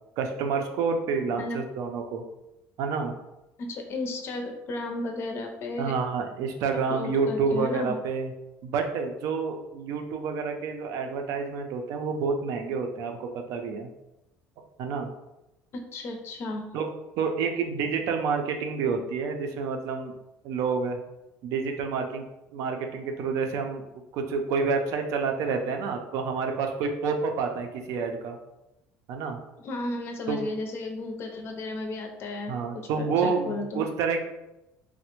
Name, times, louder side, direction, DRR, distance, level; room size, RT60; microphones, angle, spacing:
voice 1, 0.2-2.2 2.8-3.1 5.8-8.3 8.6-13.9 14.8-15.1 16.7-16.9 17.2-20.1 20.4-21.0 21.4-22.2 22.5-23.8 24.1-28.4 29.1-29.4 30.3-30.5 32.5-34.3, right 5 dB, 65° right, 4 dB, 0.4 m, -28 dB
voice 2, 3.6-5.9 6.9-8.0 15.9-16.7 29.6-33.8, left 2 dB, 45° left, 4 dB, 0.5 m, -34 dB
3.2 x 2.1 x 2.9 m, 0.93 s
cardioid pair, 130°, 6 cm